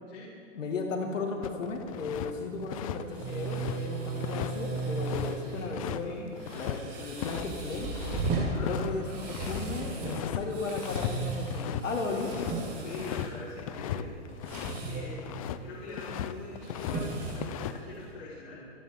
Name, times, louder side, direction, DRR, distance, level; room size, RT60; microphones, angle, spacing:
voice 1, 0.5-7.9 8.6-12.3, left 3 dB, 85° left, 2 dB, 2.1 m, -35 dB
sound 1, 1.4-2.3 2.6-6.8 7.2-7.5 7.7-9.7 10.0-10.4 10.7-11.2 11.4-14.8 15.1-15.6 15.9-17.0 17.3-17.8, left 11 dB, 30° left, 0.4 m, -37 dB
sound 2, 1.9-18.1, right 3 dB, 20° right, 3.8 m, -37 dB
voice 2, 8.5-9.3 12.8-14.1 14.9-15.3 15.6-18.6, left 3 dB, 60° left, -8 dB, 4.3 m, -43 dB
26.5 x 10.5 x 3.7 m, 2.4 s
hypercardioid pair, 145°, 37 cm